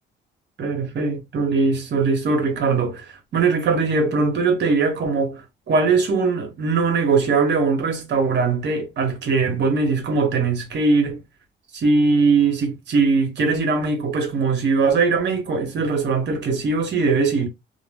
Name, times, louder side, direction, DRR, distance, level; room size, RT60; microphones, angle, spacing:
voice 1, 0.6-11.2 11.7-17.5, right 4 dB, 60° right, 1.2 m, -21 dB
2.4 x 2.3 x 3.3 m
cardioid pair, 90°, 20 cm